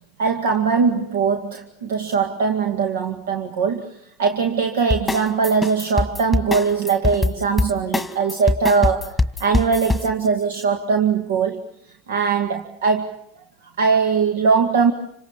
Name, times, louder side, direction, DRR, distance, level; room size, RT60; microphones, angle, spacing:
voice 1, 0.2-9.1 9.4-11.6 12.1-13.2 13.8-14.9, right 5 dB, 80° right, 4 dB, 2.1 m, -21 dB
sound 1, 4.9-10.1, left 3 dB, 5° left, 1.6 m, -22 dB
28.0 x 25.5 x 7.3 m, 0.71 s
hypercardioid pair, 100°, 0 cm